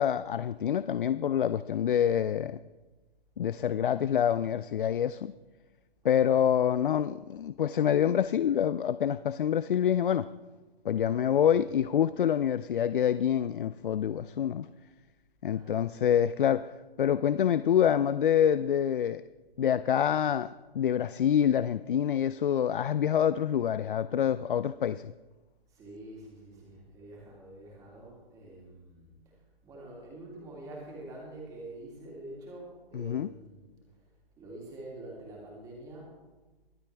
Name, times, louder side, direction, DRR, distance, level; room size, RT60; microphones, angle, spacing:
voice 1, 0.0-2.6 3.4-5.3 6.0-10.3 10.8-14.7 15.4-16.7 17.0-19.2 19.6-20.5 20.7-25.1 32.9-33.3, left 9 dB, 60° left, 14 dB, 0.4 m, -26 dB
voice 2, 6.0-6.5 11.2-11.6 15.5-16.5 25.7-29.1 29.6-33.7 34.4-36.1, right 2 dB, 10° right, -3 dB, 2.9 m, -46 dB
24.0 x 8.3 x 3.4 m, 1.2 s
hypercardioid pair, 160°, 30 cm